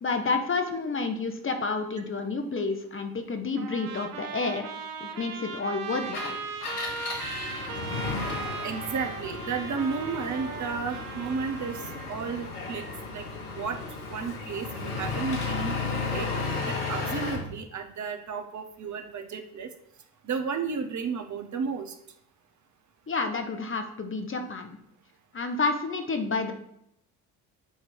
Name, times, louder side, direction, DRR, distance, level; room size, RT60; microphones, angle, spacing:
voice 1, 0.0-4.7 5.0-6.4 23.1-24.8 25.3-26.5, left 4 dB, 30° left, 7 dB, 1.2 m, -30 dB
Trumpet, 3.6-12.2, right 5 dB, 80° right, 0.8 m, -38 dB
Engine, 6.0-17.5, left 4 dB, 90° left, 1.2 m, -34 dB
voice 2, 8.6-12.8 13.1-13.8 14.0-16.3 16.7-19.7 20.2-21.9, right 5 dB, 40° right, 6 dB, 0.9 m, -33 dB
8.0 x 3.1 x 6.2 m, 0.75 s
hypercardioid pair, 55°, 44 cm